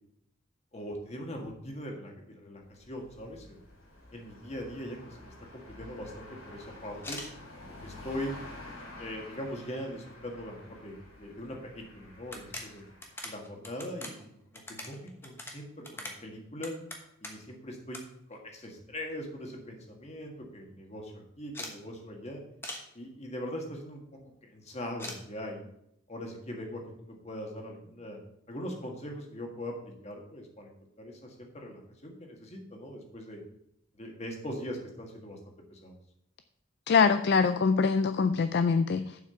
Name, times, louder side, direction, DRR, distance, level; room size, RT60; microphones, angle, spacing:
voice 1, 0.7-3.6 4.1-7.2 7.6-8.4 9.0-12.8 13.2-16.7 17.2-18.0 18.3-22.4 22.9-24.0 24.4-25.7 26.1-28.2 28.5-30.7 31.0-33.4 33.9-35.4 35.7-36.0, equal, 30° left, 1 dB, 1.7 m, -41 dB
sound 1, 2.6-13.2, left 1 dB, 85° left, 4.3 m, -49 dB
sound 2, 6.9-7.3 8.0-8.1 8.6-9.3 9.6-9.7 10.0-10.1 11.4-11.5 11.8-11.9 12.2-17.5 17.9-18.0 18.3-19.1 19.5-19.6 19.8-19.9 20.2-20.5 21.5-21.8 22.6-22.9 25.0-25.2, left 1 dB, 10° left, 1.1 m, -43 dB
voice 2, 36.9-39.2, left 5 dB, 50° left, 10 dB, 0.4 m, -24 dB
7.3 x 5.8 x 6.8 m, 0.75 s
head